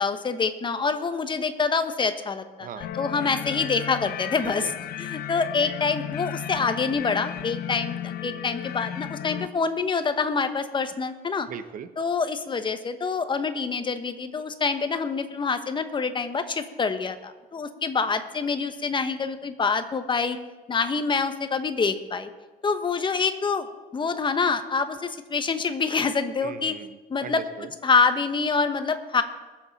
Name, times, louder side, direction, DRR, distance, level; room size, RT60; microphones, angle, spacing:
voice 1, 0.0-4.7 5.0-11.5 12.0-20.4 20.7-22.3 22.6-23.7 23.9-26.8 27.1-27.4 27.8-29.2, left 4 dB, 30° left, 9 dB, 1.1 m, -26 dB
voice 2, 2.6-2.9 4.4-4.7 11.5-11.9 26.4-27.7, right 8 dB, 55° right, 11 dB, 1.0 m, -39 dB
sound 1, 2.8-9.5, left 10 dB, 60° left, 0.7 m, -34 dB
22.5 x 7.7 x 4.2 m, 1.3 s
cardioid pair, 110°, 17 cm